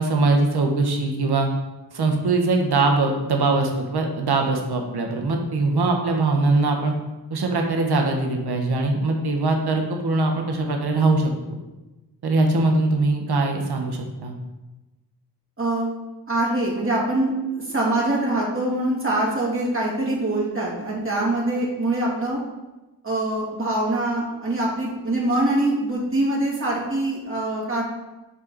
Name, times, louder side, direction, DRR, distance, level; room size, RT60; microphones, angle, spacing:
voice 1, 0.0-1.5 1.9-6.9 7.3-11.6 12.2-14.3, right 3 dB, 65° right, 2 dB, 1.3 m, -22 dB
voice 2, 15.6-15.9 16.3-22.4 23.0-27.8, right 1 dB, 30° right, -5 dB, 2.7 m, -24 dB
8.3 x 6.0 x 4.1 m, 1.1 s
wide cardioid pair, 110°, 41 cm